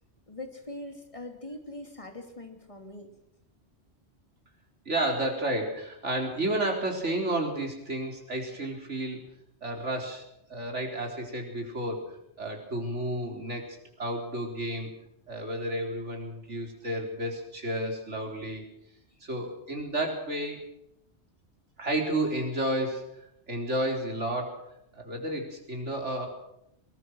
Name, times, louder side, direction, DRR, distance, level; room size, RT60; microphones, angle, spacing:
voice 1, 0.3-3.1, left 1 dB, 30° left, 4 dB, 3.0 m, -42 dB
voice 2, 4.9-9.2 9.6-10.2 10.5-14.9 15.3-18.6 19.2-20.6 21.8-24.7 24.9-26.3, right 1 dB, 85° right, 2 dB, 4.3 m, -31 dB
22.5 x 19.0 x 6.3 m, 0.78 s
omnidirectional pair, 1.2 m